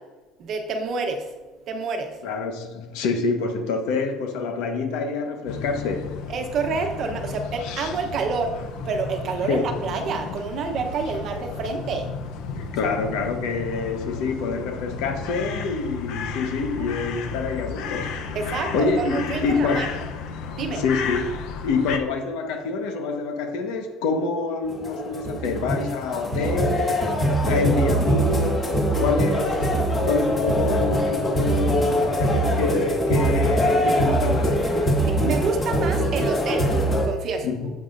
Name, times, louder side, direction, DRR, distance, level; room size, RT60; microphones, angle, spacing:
voice 1, 0.4-1.3 1.7-2.2 6.3-8.5 8.8-12.1 12.8-12.9 18.3-19.9 20.6-20.8 35.1-36.7 37.0-37.5, right 4 dB, 40° right, 1.0 m, -28 dB
voice 2, 2.2-6.2 9.5-9.7 12.5-19.9 20.7-21.3 21.6-29.7 30.0-34.6 37.4-37.7, left 4 dB, 80° left, 1.3 m, -27 dB
sound 1, 5.5-22.0, left 5 dB, 65° left, 0.8 m, -33 dB
sound 2, 24.7-37.0, equal, 20° left, 1.8 m, -22 dB
11.0 x 7.8 x 2.6 m
cardioid pair, 175°, 0 cm